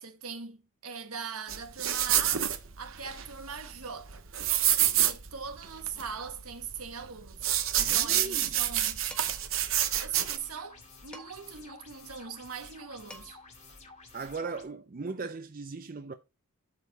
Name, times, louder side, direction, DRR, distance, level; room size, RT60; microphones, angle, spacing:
voice 1, 0.0-2.5 2.8-4.2 4.9-9.0 9.9-13.4, right 6 dB, 80° right, 1.3 m, -41 dB
sound 1, 1.5-10.4, right 11 dB, 65° right, 0.9 m, -28 dB
voice 2, 7.8-8.6 14.1-16.1, right 4 dB, 40° right, 0.5 m, -38 dB
Dishes pots and pans, 9.1-9.5 11.1-11.6 12.8-12.9 13.1-13.6, equal, 5° left, 1.3 m, -49 dB
sound 2, 10.3-14.6, left 3 dB, 30° left, 2.2 m, -52 dB
8.0 x 6.7 x 4.0 m
head